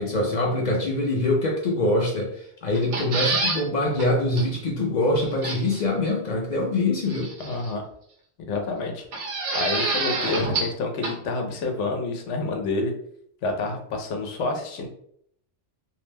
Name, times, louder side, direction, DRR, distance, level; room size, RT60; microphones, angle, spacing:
voice 1, 0.0-7.3, left 2 dB, 55° left, -1 dB, 0.5 m, -24 dB
sound 1, 2.7-3.6 4.0-4.1 4.4-4.5 5.4-5.8 7.1-7.7 9.1-10.8 11.0-11.1, right 3 dB, 85° right, 1.0 m, -27 dB
voice 2, 7.4-7.8 8.5-12.9 13.4-14.9, left 3 dB, 85° left, 3 dB, 0.9 m, -28 dB
2.6 x 2.0 x 3.2 m, 0.67 s
omnidirectional pair, 1.2 m